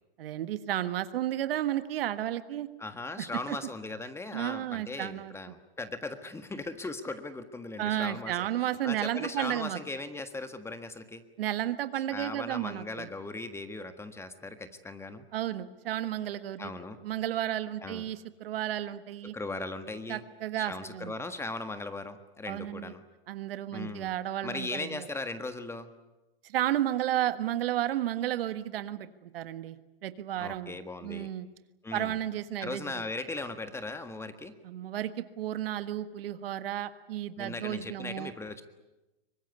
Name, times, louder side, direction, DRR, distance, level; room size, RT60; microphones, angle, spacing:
voice 1, 0.2-2.7 3.2-3.6 4.3-5.3 7.8-9.8 11.4-13.1 15.3-16.7 17.0-19.3 20.1-21.1 22.5-22.9 23.3-25.1 26.4-29.8 30.0-31.5 31.9-33.1 34.6-38.3, right 12 dB, 70° right, 12 dB, 1.6 m, -33 dB
voice 2, 2.8-8.5 8.8-11.2 12.1-15.2 16.6-17.0 17.8-18.0 19.2-20.2 20.6-23.0 23.7-24.1 24.4-25.9 30.4-31.3 31.8-32.2 32.6-34.5 37.4-38.6, left 2 dB, 10° left, 9 dB, 1.6 m, -38 dB
24.0 x 20.5 x 9.5 m, 1.0 s
hypercardioid pair, 130°, 29 cm